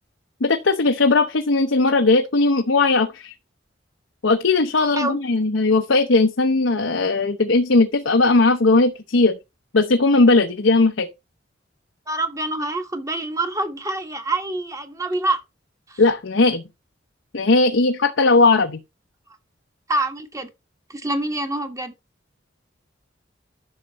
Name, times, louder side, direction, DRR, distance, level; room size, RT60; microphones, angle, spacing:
voice 1, 0.4-3.3 4.2-9.4 9.7-11.1 16.0-16.6 17.3-18.8, left 3 dB, 85° left, 0.9 m, -18 dB
voice 2, 12.1-15.4 15.9-16.0 19.9-20.5 20.9-21.9, right 2 dB, 20° right, 1.4 m, -26 dB
11.0 x 6.6 x 3.0 m
head